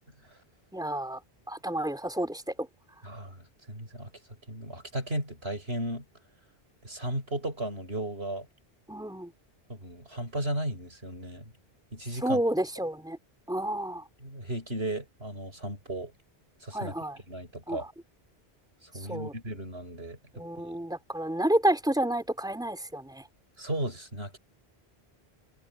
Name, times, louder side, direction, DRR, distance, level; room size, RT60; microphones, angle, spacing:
voice 1, 0.7-1.2 1.5-2.4 8.9-9.3 12.2-13.2 13.5-14.0 16.7-17.2 17.7-17.9 19.1-19.3 20.3-23.2, right 1 dB, 5° right, 3.6 m, -30 dB
voice 2, 3.0-4.1 4.5-6.0 6.8-8.5 9.7-11.5 11.9-12.4 14.2-16.1 16.6-17.0 17.3-17.9 18.9-20.2 23.6-24.4, right 1 dB, 90° right, 8.4 m, -35 dB
omnidirectional pair, 1.0 m